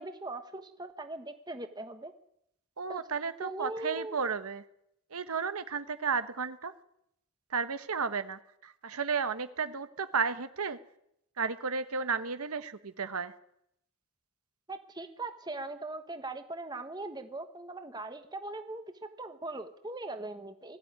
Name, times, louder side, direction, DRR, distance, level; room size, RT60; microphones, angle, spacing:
voice 1, 0.0-2.1 2.9-3.1 3.4-4.2 14.7-18.8 19.2-20.8, right 2 dB, 20° right, 8 dB, 1.4 m, -40 dB
voice 2, 2.8-4.6 5.1-6.7 7.5-10.8 11.4-13.3, right 5 dB, 85° right, 11 dB, 1.2 m, -33 dB
20.5 x 14.5 x 9.5 m, 0.77 s
head